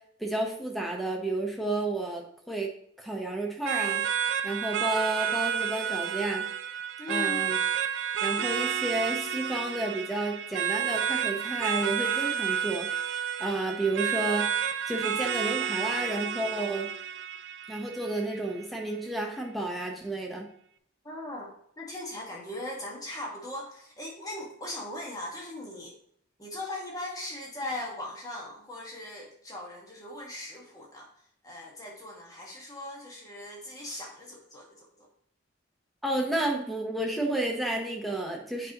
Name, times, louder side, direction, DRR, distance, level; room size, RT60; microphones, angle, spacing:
voice 1, 0.2-2.7 3.0-4.1 4.4-6.5 7.1-7.6 8.2-12.9 13.4-14.5 14.9-16.9 17.7-20.5 36.0-38.7, right 2 dB, ahead, 1 dB, 0.9 m, -31 dB
sound 1, 3.7-18.6, right 8 dB, 65° right, 0.4 m, -30 dB
voice 2, 7.0-7.4 21.0-21.5 21.8-26.0 26.4-31.1 31.4-35.1, left 1 dB, 20° left, -2 dB, 1.4 m, -39 dB
8.2 x 5.2 x 2.9 m, 0.67 s
head